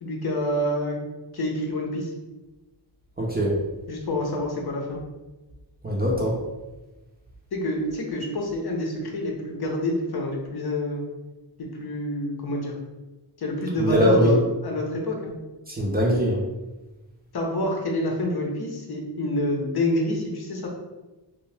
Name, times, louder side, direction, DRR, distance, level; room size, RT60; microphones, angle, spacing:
voice 1, 0.0-1.0 1.3-2.1 3.9-5.0 7.5-11.0 11.6-12.7 13.4-15.3 17.3-20.7, left 1 dB, 55° left, 0 dB, 0.7 m, -27 dB
voice 2, 3.2-3.5 5.8-6.3 13.8-14.4 15.7-16.4, equal, 20° right, -3 dB, 0.5 m, -21 dB
2.7 x 2.2 x 3.2 m, 1.1 s
wide cardioid pair, 95°, 45 cm